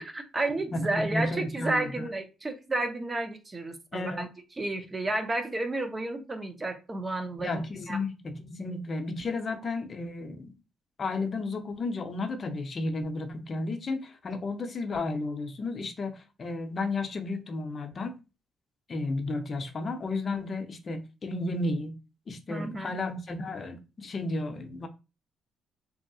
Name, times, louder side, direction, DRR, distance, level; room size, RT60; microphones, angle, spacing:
voice 1, 0.0-4.3 4.6-7.6 7.9-8.0 22.5-22.9, right 2 dB, 25° right, 0.6 m, -31 dB
voice 2, 0.7-2.0 3.9-4.2 7.4-10.5 11.0-18.2 18.9-22.0 22.3-24.9, left 2 dB, 40° left, 0.6 m, -33 dB
2.9 x 2.7 x 2.7 m
cardioid pair, 90°, 0 cm